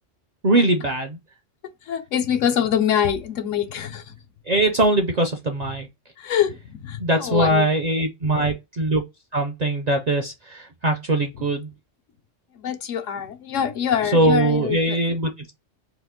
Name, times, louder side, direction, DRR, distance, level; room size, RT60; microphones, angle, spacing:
voice 1, 0.4-1.2 4.5-5.9 7.0-9.0 9.3-11.7 14.1-15.6, right 2 dB, 55° right, 0.5 m, -21 dB
voice 2, 1.8-4.2 6.2-7.7 12.6-15.0, left 9 dB, 80° left, 1.0 m, -24 dB
2.9 x 2.4 x 3.5 m
omnidirectional pair, 1.3 m